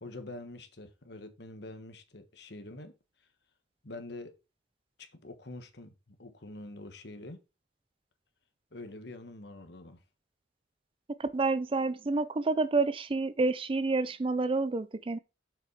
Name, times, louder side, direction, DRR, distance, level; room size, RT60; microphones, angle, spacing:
voice 1, 0.0-2.9 3.8-4.3 5.0-7.4 8.7-10.0, left 2 dB, 60° left, 1.4 m, -45 dB
voice 2, 11.2-15.2, right 3 dB, 30° right, 0.4 m, -29 dB
7.3 x 5.7 x 4.7 m
head